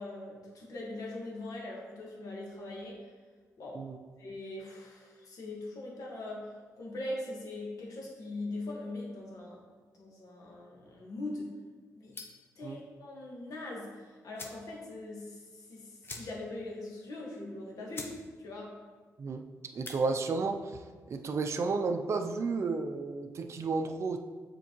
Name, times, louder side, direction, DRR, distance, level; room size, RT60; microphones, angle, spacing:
voice 1, 0.0-3.1 3.6-3.8 4.2-9.6 9.9-11.5 11.9-12.2 12.6-18.7, left 2 dB, 70° left, -2 dB, 1.5 m, -41 dB
sound 1, 12.1-12.5 13.8-13.9 14.3-14.7 15.0-15.1 15.4-15.5 16.0-16.6 17.0-17.1 17.6-17.7 17.9-18.2 18.5-18.9 19.6-20.0, left 3 dB, 35° left, 0.9 m, -45 dB
voice 2, 19.7-20.8 21.1-24.2, right 4 dB, 50° right, 5 dB, 0.5 m, -32 dB
7.0 x 4.4 x 3.0 m, 1.5 s
cardioid pair, 80°, 6 cm